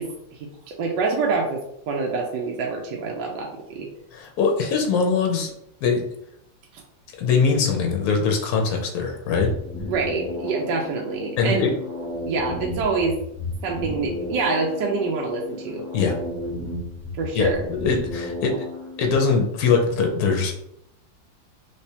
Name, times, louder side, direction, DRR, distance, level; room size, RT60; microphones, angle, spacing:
voice 1, 0.0-3.9 6.7-6.8 9.9-11.6 12.2-13.2 13.6-15.8 17.2-17.6, right 4 dB, 75° right, 0 dB, 1.2 m, -26 dB
voice 2, 4.1-5.5 5.8-6.0 7.2-9.5 11.4-11.7 15.9-16.1 17.3-18.6 19.0-20.5, left 5 dB, 70° left, 2 dB, 0.9 m, -22 dB
sound 1, 9.2-19.2, left 2 dB, 20° left, 0.4 m, -33 dB
3.3 x 3.2 x 2.8 m, 0.79 s
omnidirectional pair, 2.1 m